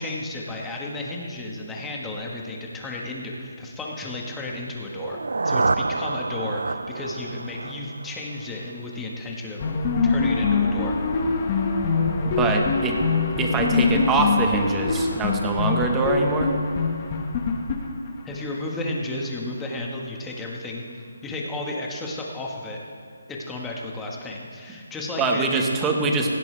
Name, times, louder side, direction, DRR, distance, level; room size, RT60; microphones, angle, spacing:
voice 1, 0.0-5.2 5.4-10.9 18.2-20.8 21.2-22.8 23.3-25.6, left 2 dB, 5° left, -2 dB, 1.5 m, -33 dB
sound 1, 4.9-8.8, right 3 dB, 90° right, 0.4 m, -28 dB
sound 2, 9.6-18.4, left 4 dB, 25° left, 1.4 m, -23 dB
voice 2, 12.4-13.0 13.4-16.5 25.2-26.3, right 3 dB, 10° right, 2 dB, 1.2 m, -23 dB
18.5 x 16.5 x 3.4 m, 2.2 s
hypercardioid pair, 170°, 0 cm